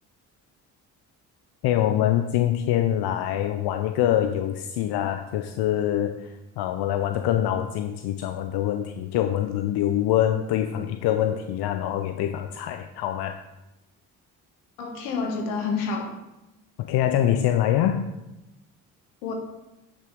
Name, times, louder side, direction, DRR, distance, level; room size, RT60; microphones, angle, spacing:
voice 1, 1.6-13.4 16.8-18.1, left 11 dB, 60° left, 7 dB, 0.7 m, -24 dB
voice 2, 14.8-16.1 19.2-19.3, left 4 dB, 80° left, 3 dB, 1.5 m, -28 dB
9.8 x 5.9 x 3.7 m, 0.96 s
hypercardioid pair, 50°, 44 cm